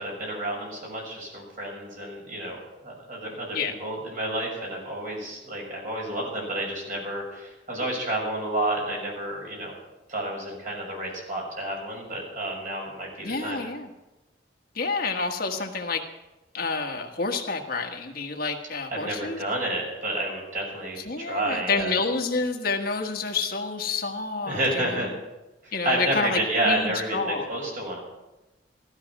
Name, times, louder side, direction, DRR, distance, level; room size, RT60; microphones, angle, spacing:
voice 1, 0.0-9.7 10.1-13.6 18.9-22.0 24.4-25.1 25.6-28.0, right 1 dB, 50° right, -1 dB, 6.6 m, -30 dB
voice 2, 13.2-13.9 14.7-16.0 16.5-19.4 21.0-25.1 25.7-27.5, left 4 dB, 55° left, 3 dB, 1.4 m, -29 dB
15.5 x 13.0 x 6.0 m, 1.0 s
head